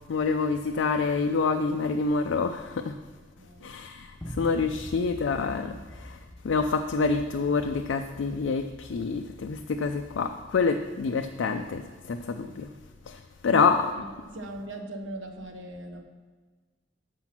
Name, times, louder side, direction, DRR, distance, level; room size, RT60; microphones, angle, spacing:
voice 1, 0.1-3.0 3.6-4.1 4.4-5.8 6.4-11.8 12.1-12.7 13.1-13.2 13.4-13.9, left 4 dB, 70° left, 5 dB, 0.4 m, -26 dB
voice 2, 3.4-3.7 13.4-13.7 14.0-14.1 14.3-16.0, right 1 dB, 85° right, 4 dB, 1.0 m, -38 dB
sound 1, 4.2-10.5, equal, 10° left, 1.4 m, -45 dB
6.8 x 5.9 x 5.9 m, 1.4 s
head